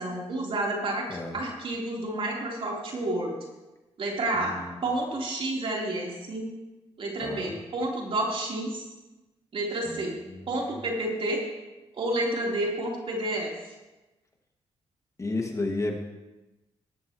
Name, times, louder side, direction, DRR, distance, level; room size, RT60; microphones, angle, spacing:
voice 1, 0.0-3.4 4.0-4.6 4.8-6.5 7.0-8.9 9.5-10.2 10.5-11.4 11.9-13.5, right 1 dB, 55° right, -2 dB, 3.8 m, -30 dB
voice 2, 4.3-4.8 7.2-7.6 9.8-10.4 15.2-16.0, left 2 dB, 30° left, 1 dB, 2.1 m, -33 dB
18.5 x 11.5 x 3.1 m, 1.1 s
cardioid pair, 75°, 11 cm